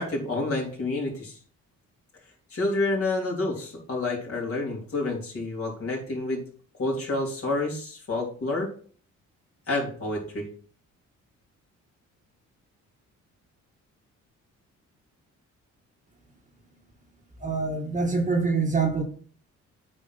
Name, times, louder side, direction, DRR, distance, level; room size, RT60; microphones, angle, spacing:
voice 1, 0.0-1.4 2.5-6.4 6.8-8.7 9.7-10.5, left 2 dB, 50° left, -2 dB, 3.5 m, -29 dB
voice 2, 17.4-19.0, right 4 dB, 25° right, 2 dB, 1.6 m, -25 dB
8.7 x 4.7 x 4.0 m, 0.43 s
cardioid pair, 90°, 30 cm